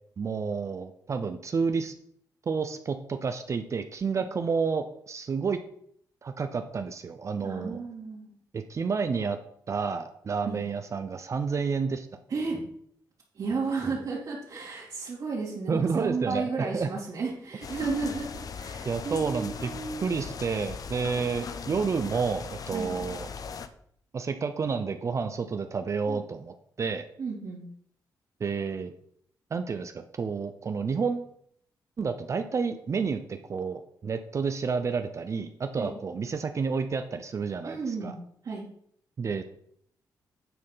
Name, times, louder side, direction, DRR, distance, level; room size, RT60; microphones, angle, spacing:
voice 1, 0.2-1.9 2.5-5.6 6.2-7.8 8.5-9.4 9.7-12.1 15.7-16.9 18.8-19.7 20.0-23.3 24.1-27.1 28.4-28.9 29.5-31.3 32.0-38.1 39.2-39.4, right 5 dB, 40° right, 8 dB, 0.6 m, -30 dB
voice 2, 7.4-8.3 10.4-10.6 12.3-12.6 13.3-20.2 22.7-22.9 26.1-26.2 27.2-27.7 35.8-35.9 37.6-38.2 38.4-38.7, right 4 dB, 55° right, -7 dB, 2.6 m, -33 dB
sound 1, 17.6-23.7, left 6 dB, 55° left, 0.7 m, -39 dB
9.3 x 4.2 x 5.6 m, 0.67 s
cardioid pair, 105°, 8 cm